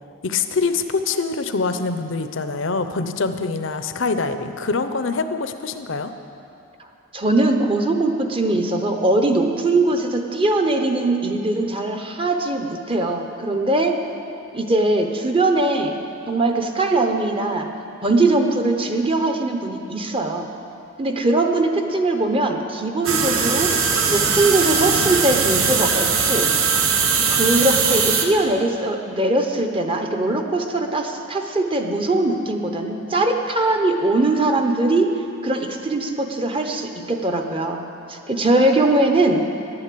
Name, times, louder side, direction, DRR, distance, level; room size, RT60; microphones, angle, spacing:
voice 1, 0.2-6.1, left 4 dB, 65° left, 9 dB, 0.7 m, -24 dB
voice 2, 7.1-14.0 14.5-16.0 16.3-17.7 18.0-20.5 21.0-23.7 24.1-26.5 27.3-35.1 35.4-37.8 38.1-39.5, right 2 dB, 25° right, 4 dB, 0.9 m, -21 dB
sound 1, 23.1-28.3, right 5 dB, 80° right, 1.2 m, -20 dB
11.5 x 9.8 x 8.4 m, 2.7 s
head